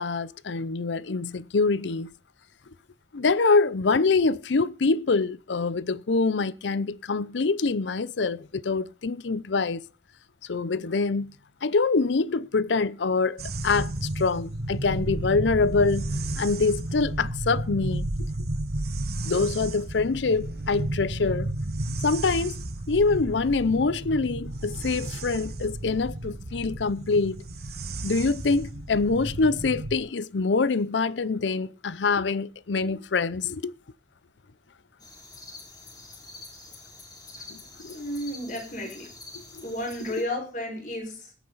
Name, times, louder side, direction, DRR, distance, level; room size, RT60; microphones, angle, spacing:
voice 1, 0.0-2.1 3.1-9.8 10.4-11.3 11.6-16.0 16.4-18.3 19.2-21.5 22.0-22.6 22.9-27.4 28.0-33.7 37.5-38.0 39.3-39.6, left 4 dB, 85° left, 0.6 m, -25 dB
sound 1, 13.4-30.0, right 1 dB, 60° right, 1.3 m, -32 dB
sound 2, 35.0-40.2, left 3 dB, 20° left, 3.1 m, -46 dB
voice 2, 37.9-39.1 39.6-41.3, left 1 dB, 45° left, 5.2 m, -33 dB
20.5 x 8.8 x 4.1 m
head